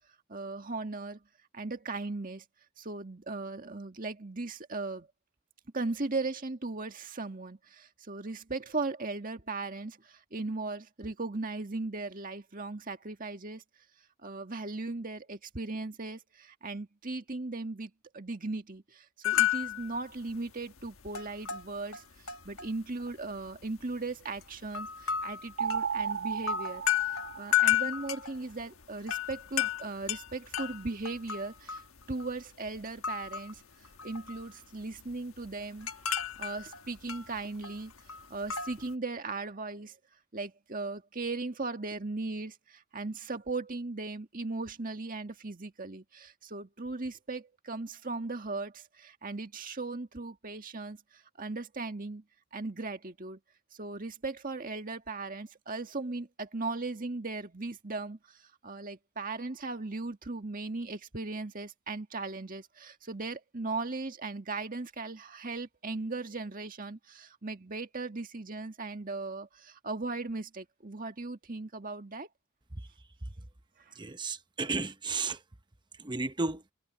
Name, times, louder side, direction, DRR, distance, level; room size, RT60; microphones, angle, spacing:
voice 1, 0.3-1.2 1.5-2.4 2.8-5.1 5.7-13.6 14.2-31.8 32.1-33.6 34.0-35.9 36.4-40.0 40.3-52.2 52.5-53.4 53.7-72.3 73.8-74.0, right 3 dB, 40° right, 1.8 m, -38 dB
sound 1, 19.2-20.0 20.3-20.5 20.8-22.7 23.0-23.8 24.4-32.4 32.7-33.6 33.8-34.5 34.8-38.9, left 11 dB, 80° left, 1.3 m, -32 dB
sound 2, 25.6-28.0, right 6 dB, 70° right, 2.8 m, -34 dB
voice 2, 73.9-75.4 76.0-76.6, right 3 dB, 20° right, 0.9 m, -33 dB
head